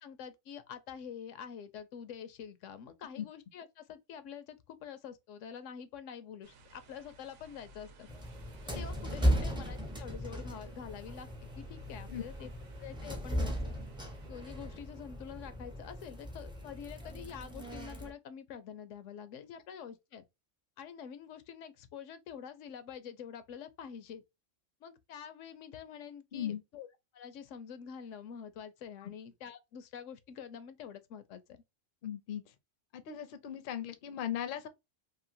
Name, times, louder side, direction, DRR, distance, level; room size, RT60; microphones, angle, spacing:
voice 1, 0.0-8.1 8.7-12.5 12.8-13.7 14.3-20.2 20.8-24.2 24.8-26.9 27.1-31.6, left 7 dB, 80° left, 0.9 m, -47 dB
sound 1, 6.4-14.3, right 2 dB, 75° right, 1.0 m, -57 dB
sound 2, 8.1-18.1, equal, 5° right, 0.4 m, -37 dB
voice 2, 26.3-26.6 29.0-29.1 32.0-32.4 32.9-34.7, left 10 dB, 60° left, 0.6 m, -38 dB
2.9 x 2.5 x 2.5 m
omnidirectional pair, 1.3 m